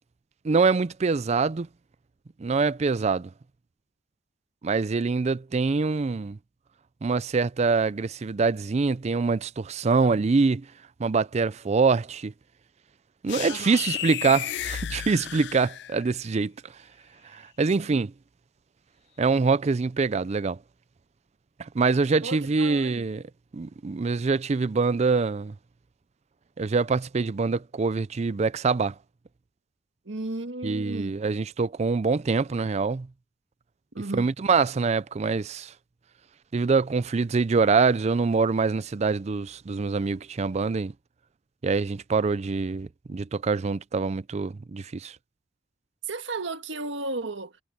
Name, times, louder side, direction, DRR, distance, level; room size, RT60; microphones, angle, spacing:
voice 1, 0.4-1.7 2.4-3.3 4.6-6.4 7.0-10.7 11.0-12.3 13.2-16.5 17.3-18.1 19.2-20.6 21.6-23.2 23.5-25.5 26.6-28.9 30.6-33.1 34.1-35.7 36.5-40.9 41.6-45.2, right 4 dB, 35° right, 0.4 m, -24 dB
sound 1, 13.3-16.2, left 12 dB, 60° left, 0.4 m, -33 dB
voice 2, 13.5-13.8 17.8-18.0 22.2-23.0 30.1-31.2 33.9-34.3 46.1-47.5, right 2 dB, 70° right, 1.7 m, -34 dB
head